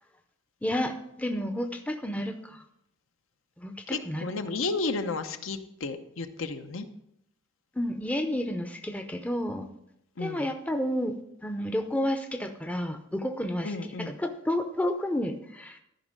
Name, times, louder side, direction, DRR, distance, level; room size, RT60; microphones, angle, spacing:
voice 1, 0.6-2.6 3.6-4.2 7.8-9.7 10.2-11.1 11.4-15.8, left 1 dB, 5° left, 6 dB, 0.5 m, -31 dB
voice 2, 3.9-6.9 10.2-10.5 13.6-14.2, left 3 dB, 75° left, 8 dB, 0.8 m, -32 dB
13.0 x 5.4 x 5.2 m, 0.79 s
head